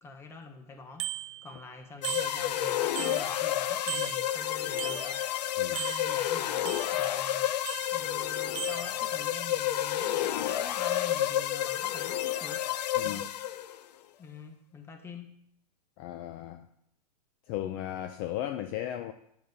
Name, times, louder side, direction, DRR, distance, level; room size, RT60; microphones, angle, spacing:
voice 1, 0.0-12.6 13.0-13.3 14.2-15.4, left 4 dB, 10° left, 6 dB, 1.0 m, -47 dB
Bicycle bell, 1.0-1.7 2.0-3.6 3.9-5.4 5.8-7.2 7.7-8.2 8.6-8.9, right 14 dB, 55° right, 0.7 m, -39 dB
sound 1, 2.0-13.8, left 12 dB, 75° left, 0.6 m, -30 dB
voice 2, 16.0-16.7 17.5-19.1, left 12 dB, 35° left, 8 dB, 0.5 m, -35 dB
10.0 x 7.0 x 4.1 m, 0.75 s
supercardioid pair, 155°, 21 cm